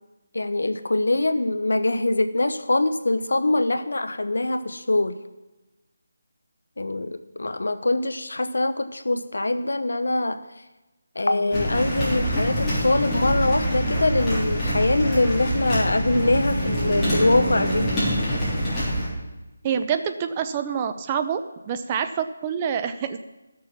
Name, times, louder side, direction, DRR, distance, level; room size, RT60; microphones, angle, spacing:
voice 1, 0.3-5.1 6.8-10.4 11.1-17.9, left 2 dB, 90° left, 10 dB, 1.0 m, -23 dB
sound 1, 11.5-19.1, equal, 10° left, 3.5 m, -25 dB
Bowed string instrument, 15.2-18.4, right 2 dB, 85° right, 1.5 m, -32 dB
voice 2, 19.6-23.2, right 7 dB, 20° right, 9 dB, 0.5 m, -27 dB
13.5 x 6.7 x 5.8 m, 1.1 s
figure-of-eight pair, 170°, 0 cm